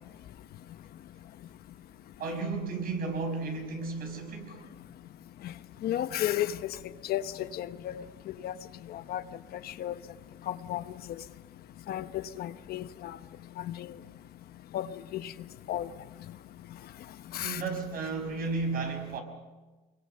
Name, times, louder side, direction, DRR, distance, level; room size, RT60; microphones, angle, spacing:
voice 1, 2.2-4.6 17.4-19.2, right 3 dB, 60° right, 5.7 m, -33 dB
voice 2, 5.8-6.6 7.1-8.0 8.4-8.5 8.9-9.2 9.7-9.9 10.5-10.8 11.9-13.2 13.8-13.9 14.7-14.9 15.1-15.3 15.7-15.9 17.3-17.6, left 12 dB, 65° left, 1.0 m, -33 dB
25.0 x 23.0 x 6.8 m
cardioid pair, 110°, 17 cm